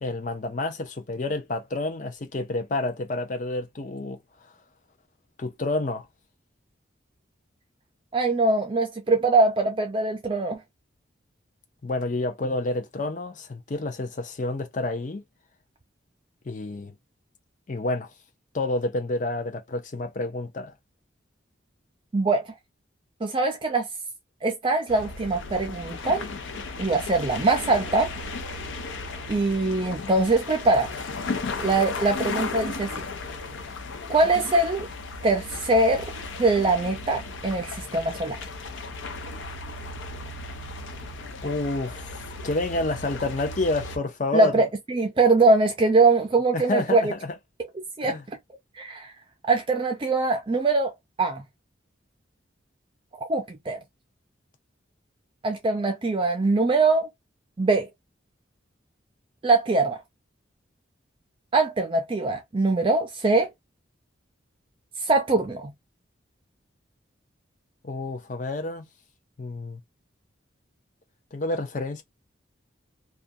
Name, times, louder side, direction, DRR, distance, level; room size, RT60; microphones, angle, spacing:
voice 1, 0.0-4.2 5.4-6.1 11.8-15.2 16.5-16.9 17.7-18.1 18.5-20.7 41.4-44.6 46.5-47.4 48.0-48.2 67.8-68.9 69.4-69.8 71.3-72.0, left 2 dB, 40° left, 0.5 m, -29 dB
voice 2, 8.1-10.6 22.1-22.5 23.2-23.9 24.4-26.3 26.8-28.1 29.3-30.9 31.6-33.0 34.1-34.9 35.2-36.1 36.4-38.4 44.3-47.1 48.0-48.2 48.8-49.1 49.5-50.9 51.2-51.4 53.3-53.8 55.4-57.1 57.6-57.9 59.4-60.0 61.5-63.5 65.0-65.7, right 3 dB, 25° right, 0.4 m, -22 dB
sound 1, 24.9-44.0, left 3 dB, 85° left, 0.6 m, -35 dB
2.5 x 2.2 x 2.6 m
head